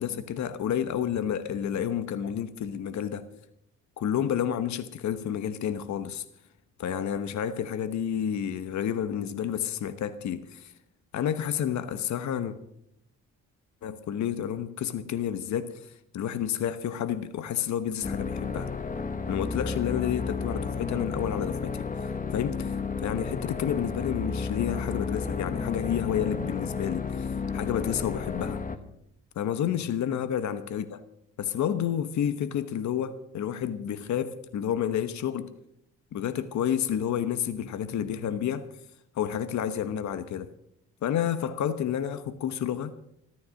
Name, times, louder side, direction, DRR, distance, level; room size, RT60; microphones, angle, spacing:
voice 1, 0.0-3.2 4.0-6.2 6.8-10.7 11.1-12.6 13.8-18.7 19.3-21.9 22.3-28.6 29.3-31.0 31.4-35.5 36.1-38.7 39.1-40.5 41.0-42.9, left 9 dB, 65° left, 1.1 m, -30 dB
sound 1, 18.0-28.8, left 5 dB, 25° left, 1.4 m, -32 dB
14.0 x 13.0 x 6.4 m
cardioid pair, 90°, 30 cm